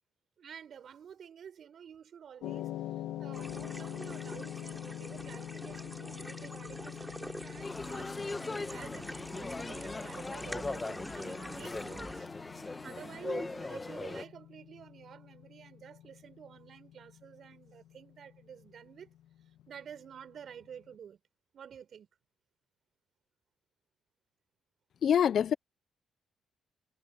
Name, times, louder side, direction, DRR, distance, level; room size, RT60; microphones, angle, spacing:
voice 1, 0.4-2.7 3.1-8.1 8.4-12.3 12.8-19.1 19.7-21.2 21.5-22.1, right 8 dB, 60° right, 5.4 m, -50 dB
sound 1, 2.4-20.7, left 12 dB, 85° left, 0.9 m, -45 dB
sound 2, 3.3-12.2, equal, 5° right, 3.6 m, -46 dB
sound 3, 7.6-14.2, left 3 dB, 20° left, 1.1 m, -39 dB
voice 2, 25.0-25.5, left 9 dB, 60° left, 0.3 m, -25 dB
cardioid pair, 90°, 0 cm